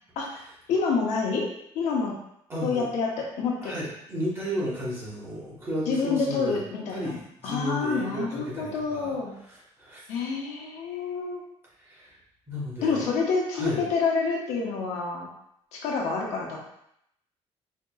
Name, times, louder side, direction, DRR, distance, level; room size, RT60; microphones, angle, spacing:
voice 1, 0.7-1.5 1.7-2.1 2.6-3.1 3.4-3.7 5.9-7.2 7.4-9.4 10.1-11.4 12.8-15.3 15.7-16.6, left 4 dB, 80° left, -2 dB, 0.9 m, -27 dB
voice 2, 2.5-2.9 3.6-6.6 6.9-9.2 9.5-10.1 11.8-12.2 12.5-13.1 13.5-13.9, equal, 20° right, -6 dB, 1.1 m, -33 dB
4.4 x 2.8 x 2.3 m, 0.75 s
cardioid pair, 160°, 12 cm